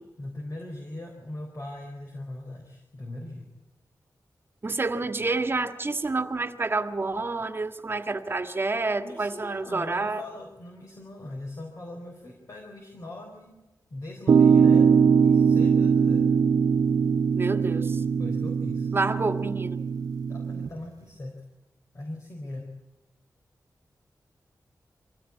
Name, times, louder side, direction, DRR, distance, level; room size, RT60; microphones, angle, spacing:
voice 1, 0.2-3.5 8.9-16.3 18.2-18.9 20.3-21.5 21.9-22.8, left 1 dB, 50° left, 2 dB, 4.1 m, -40 dB
voice 2, 4.6-10.2 17.3-18.0 18.9-19.8, right 3 dB, 35° right, 7 dB, 1.7 m, -28 dB
sound 1, 14.3-20.7, right 6 dB, 65° right, 0.9 m, -21 dB
24.5 x 16.5 x 8.5 m, 1.1 s
wide cardioid pair, 130°, 7 cm